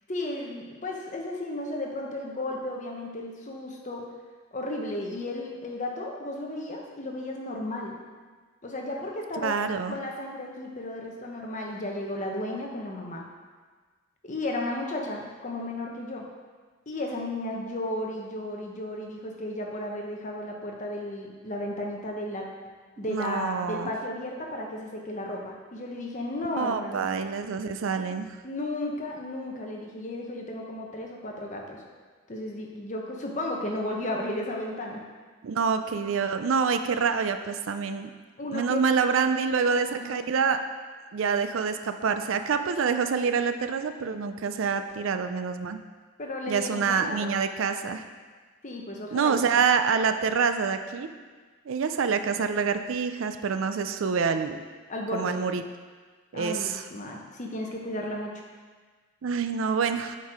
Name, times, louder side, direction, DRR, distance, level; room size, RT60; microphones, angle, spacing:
voice 1, 0.1-4.1 4.5-8.0 8.6-9.5 9.9-13.2 14.2-16.3 16.9-22.5 23.0-27.1 28.4-31.8 32.3-35.0 38.4-38.9 39.2-40.2 46.2-47.3 48.6-49.6 54.9-55.4 56.3-58.4, left 1 dB, 35° left, 0 dB, 1.0 m, -34 dB
voice 2, 9.4-9.9 23.1-23.9 26.6-28.4 35.4-38.1 38.5-40.6 41.1-45.8 46.5-48.0 49.1-51.1 51.7-54.6 55.1-55.6 56.3-56.8 59.2-60.2, right 5 dB, 60° right, 8 dB, 0.4 m, -26 dB
8.2 x 4.6 x 4.9 m, 1.4 s
head